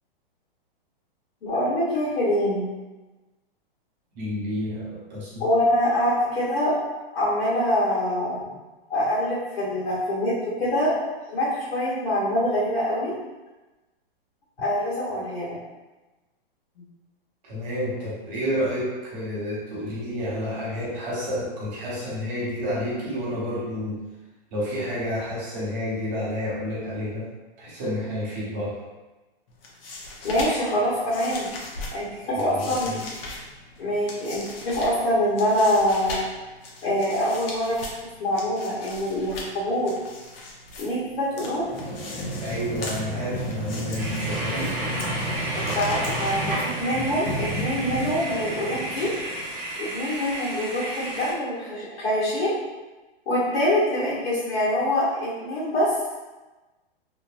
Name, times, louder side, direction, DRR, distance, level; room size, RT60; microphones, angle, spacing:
voice 1, 1.4-2.7 5.4-6.8 7.1-8.4 8.9-11.0 11.3-13.1 14.6-15.6 30.2-31.5 31.9-33.0 33.8-36.2 36.8-37.8 38.2-39.9 40.8-41.6 45.5-49.1 49.8-52.5 53.3-55.9, left 1 dB, 85° left, -9 dB, 1.2 m, -25 dB
voice 2, 4.1-5.5 17.4-24.0 24.5-27.3 27.6-28.8 32.3-33.0 42.4-44.8, left 1 dB, 45° right, -6 dB, 1.3 m, -30 dB
sound 1, 29.5-47.1, left 2 dB, 70° left, 0.8 m, -40 dB
sound 2, 41.4-49.6, right 1 dB, 20° left, 0.3 m, -33 dB
sound 3, 44.0-51.3, right 1 dB, 25° right, 0.7 m, -32 dB
2.9 x 2.1 x 2.5 m, 1.1 s
hypercardioid pair, 145°, 30 cm